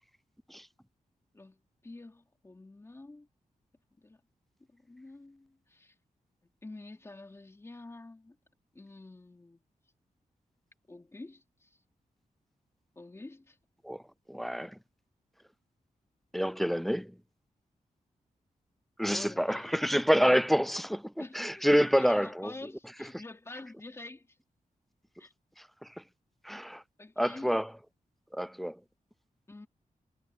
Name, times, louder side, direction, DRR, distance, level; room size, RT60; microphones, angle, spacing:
voice 1, 1.3-3.3 4.0-4.2 4.7-5.9 6.6-8.4 8.7-9.6 10.9-11.7 13.0-13.6 19.1-19.9 21.2-24.3 25.2-25.3 27.0-27.5 29.5-29.7, left 2 dB, 20° left, 3.1 m, -47 dB
voice 2, 14.3-14.7 16.3-17.1 19.0-21.0 21.4-22.5 26.5-26.8 27.2-27.7 28.3-28.7, equal, ahead, 0.3 m, -27 dB
wide cardioid pair, 170°, 14 cm